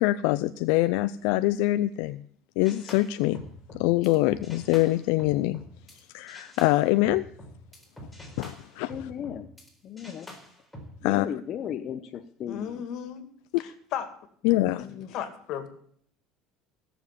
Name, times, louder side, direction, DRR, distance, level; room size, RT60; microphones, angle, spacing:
voice 1, 0.0-2.2 2.6-3.4 3.8-5.6 6.1-7.3 8.4-9.1 11.0-11.4 14.4-14.8, left 17 dB, 85° left, 12 dB, 0.5 m, -24 dB
sound 1, 2.6-6.0 6.3-9.7 10.0-10.9, equal, 5° left, 4.1 m, -46 dB
voice 2, 8.9-9.5 9.8-10.3 11.0-12.8 14.6-15.1, left 9 dB, 45° left, 6 dB, 0.8 m, -36 dB
voice 3, 12.5-13.2 13.6-14.1 14.8-14.9 15.1-15.7, left 9 dB, 60° left, 8 dB, 2.3 m, -35 dB
16.5 x 7.2 x 6.8 m, 0.62 s
cardioid pair, 130°, 0 cm